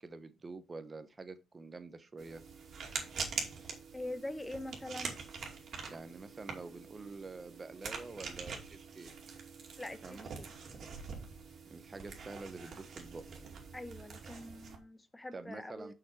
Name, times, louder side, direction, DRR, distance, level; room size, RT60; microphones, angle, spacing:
voice 1, 0.0-2.4 5.9-9.1 10.0-10.3 11.7-13.2 15.3-15.9, right 3 dB, 30° right, 1.1 m, -47 dB
sound 1, 2.2-14.8, right 5 dB, 60° right, 2.4 m, -44 dB
voice 2, 3.9-5.2 9.8-10.5 13.7-15.9, left 1 dB, 15° left, 1.0 m, -44 dB
6.1 x 6.0 x 4.8 m
cardioid pair, 90°, 0 cm